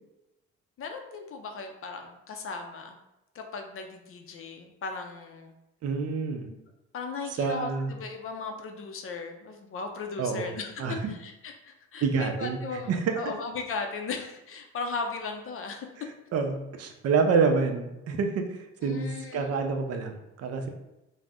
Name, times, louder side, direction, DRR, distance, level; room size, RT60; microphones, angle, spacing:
voice 1, 0.8-3.0 3.3-5.5 6.5-6.6 6.9-15.9 18.8-19.5, left 4 dB, 45° left, 4 dB, 0.4 m, -37 dB
voice 2, 5.8-6.5 7.4-7.9 10.2-10.5 10.8-11.0 12.0-12.6 12.9-13.1 16.3-20.7, right 5 dB, 55° right, 5 dB, 0.5 m, -27 dB
2.5 x 2.1 x 3.4 m, 0.94 s
cardioid pair, 90°, 30 cm